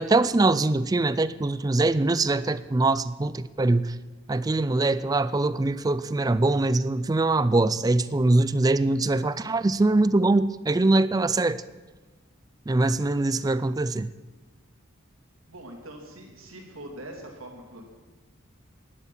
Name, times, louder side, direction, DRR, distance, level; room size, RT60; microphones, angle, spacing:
voice 1, 0.0-4.0 4.3-11.6 12.7-14.1, right 2 dB, 20° right, 0.3 m, -23 dB
voice 2, 15.5-17.8, right 1 dB, 90° right, 3.0 m, -42 dB
11.0 x 8.4 x 9.9 m
head